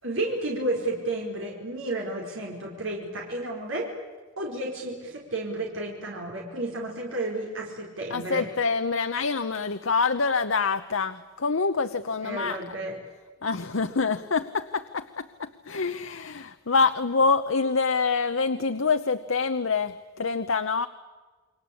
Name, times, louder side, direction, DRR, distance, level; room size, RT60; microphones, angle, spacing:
voice 1, 0.0-3.9 4.4-8.5 12.2-13.0, right 2 dB, 75° right, -1 dB, 4.6 m, -32 dB
voice 2, 8.1-12.6 13.4-20.9, left 4 dB, 90° left, 9 dB, 1.0 m, -26 dB
29.0 x 23.0 x 8.6 m, 1.3 s
head